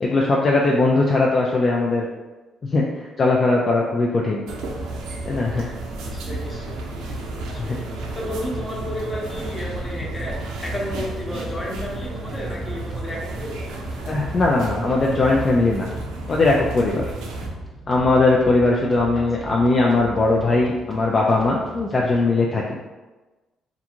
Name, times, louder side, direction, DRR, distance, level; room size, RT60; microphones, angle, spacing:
voice 1, 0.0-2.1 2.6-4.4 5.3-5.7 7.6-7.8 14.1-15.9 16.3-17.1 17.9-22.8, left 3 dB, 45° left, -2 dB, 0.3 m, -20 dB
sound 1, 4.5-17.5, right 2 dB, 85° right, 0.4 m, -32 dB
voice 2, 5.6-6.8 7.5-7.9 8.1-13.6 19.1-19.2, left 1 dB, 25° left, -3 dB, 0.8 m, -32 dB
sound 2, 9.2-22.3, right 1 dB, 10° right, 0.6 m, -39 dB
2.5 x 2.3 x 2.9 m, 1.2 s
supercardioid pair, 70°, 0 cm